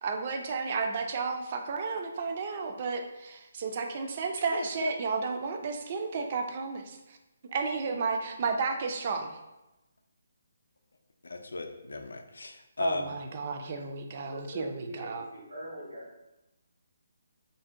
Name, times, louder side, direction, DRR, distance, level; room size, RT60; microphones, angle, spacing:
voice 1, 0.0-7.2 7.5-9.4 12.8-15.3, right 4 dB, 40° right, 5 dB, 0.3 m, -33 dB
voice 2, 4.5-4.9 11.2-13.2, left 3 dB, 90° left, 6 dB, 0.4 m, -35 dB
voice 3, 14.5-16.1, right 1 dB, 70° right, -4 dB, 1.3 m, -43 dB
2.6 x 2.1 x 3.6 m, 0.98 s
hypercardioid pair, 160°, 0 cm